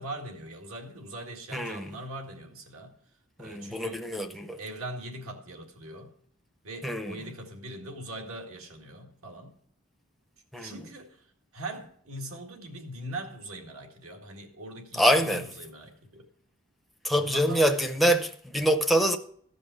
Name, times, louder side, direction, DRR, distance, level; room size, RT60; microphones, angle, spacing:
voice 1, 0.0-2.9 3.4-6.1 6.6-9.5 10.5-16.3 17.1-17.8, right 1 dB, 80° right, 1.9 m, -41 dB
voice 2, 1.5-1.9 3.4-4.6 6.8-7.2 10.5-10.7 14.9-15.4 17.0-19.2, equal, ahead, 0.5 m, -25 dB
14.5 x 5.3 x 6.8 m
head